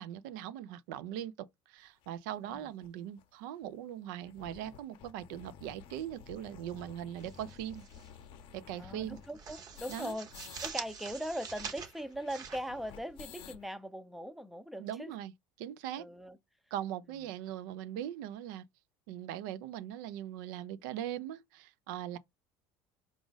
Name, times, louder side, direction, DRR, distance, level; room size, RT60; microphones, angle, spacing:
voice 1, 0.0-7.9 8.5-9.2 9.9-10.1 14.8-15.3 15.6-16.1 16.7-18.6 19.1-22.2, right 11 dB, 90° right, 0.4 m, -40 dB
sound 1, 2.0-2.1 2.8-2.9 3.2-3.3 3.6-3.7 4.0-10.7 11.0-11.1 11.3-13.7, left 8 dB, 55° left, 0.6 m, -52 dB
sound 2, 7.2-8.1 8.4-8.6 9.0-13.5, right 6 dB, 40° right, 0.9 m, -45 dB
voice 2, 8.8-10.3 10.6-15.1 16.0-16.4, equal, ahead, 0.5 m, -40 dB
4.9 x 2.4 x 3.9 m
cardioid pair, 130°, 10 cm